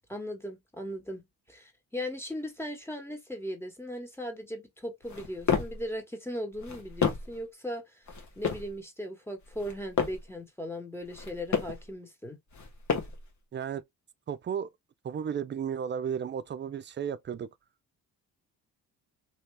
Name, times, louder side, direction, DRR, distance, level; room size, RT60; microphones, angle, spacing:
voice 1, 0.1-8.0 8.4-12.4, equal, 5° left, 1.4 m, -38 dB
sound 1, 5.0-5.8 6.5-7.4 8.1-8.7 9.4-10.3 11.0-11.8 12.5-13.3, left 6 dB, 50° left, 1.3 m, -31 dB
voice 2, 13.5-13.8 14.3-14.7 15.0-17.5, right 8 dB, 30° right, 0.4 m, -33 dB
3.0 x 2.7 x 3.3 m
cardioid pair, 75°, 37 cm